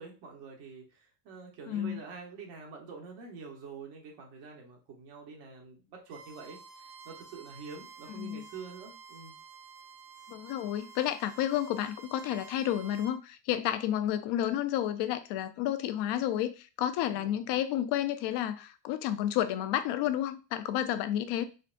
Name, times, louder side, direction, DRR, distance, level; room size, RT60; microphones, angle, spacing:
voice 1, 0.0-9.3 17.0-17.4, right 5 dB, 80° right, 1.1 m, -47 dB
voice 2, 1.7-2.0 8.2-8.4 10.3-21.5, left 11 dB, 70° left, 0.5 m, -31 dB
Bowed string instrument, 6.1-13.1, right 5 dB, 60° right, 0.6 m, -51 dB
3.9 x 2.1 x 2.5 m
cardioid pair, 135°, 43 cm